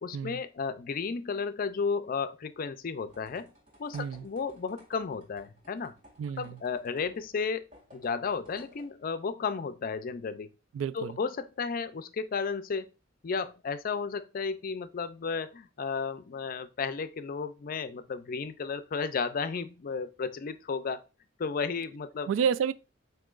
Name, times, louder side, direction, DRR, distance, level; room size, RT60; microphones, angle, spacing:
voice 1, 0.0-3.5 3.8-5.9 6.4-7.7 7.9-10.5 10.9-12.9 13.2-21.0 21.4-22.3, left 5 dB, 45° left, 0.4 m, -33 dB
sound 1, 3.1-9.3, left 1 dB, 40° right, 1.8 m, -58 dB
voice 2, 3.9-4.2 6.2-6.6 10.7-11.2 22.3-22.7, right 7 dB, 85° right, 0.3 m, -30 dB
7.5 x 2.7 x 2.4 m
head